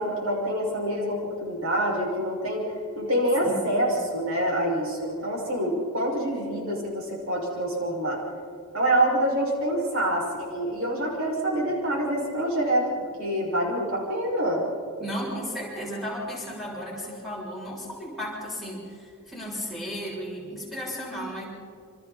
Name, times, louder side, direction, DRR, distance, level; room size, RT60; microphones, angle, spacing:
voice 1, 0.0-2.7 3.0-8.2 8.7-14.6, right 1 dB, 65° right, -2 dB, 6.1 m, -26 dB
voice 2, 3.5-4.0 15.0-21.4, equal, ahead, -6 dB, 7.2 m, -34 dB
28.5 x 27.0 x 4.3 m, 2.4 s
head